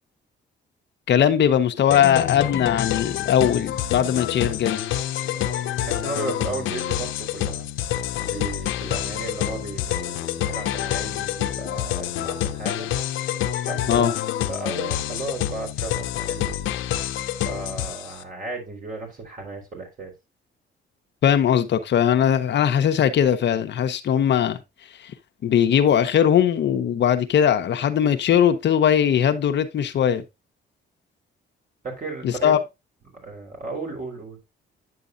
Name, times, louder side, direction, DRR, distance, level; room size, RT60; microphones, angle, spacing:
voice 1, 1.1-4.8 13.9-14.1 21.2-24.6 25.0-25.1 25.4-30.2 32.2-32.6, left 9 dB, 65° left, 0.9 m, -20 dB
sound 1, 1.9-18.2, left 12 dB, 85° left, 0.7 m, -27 dB
voice 2, 5.2-7.7 8.2-12.9 13.6-14.1 14.5-16.6 17.4-20.1 31.8-32.5 33.2-34.4, right 3 dB, 45° right, 3.9 m, -35 dB
9.3 x 6.8 x 2.5 m
cardioid pair, 90°, 20 cm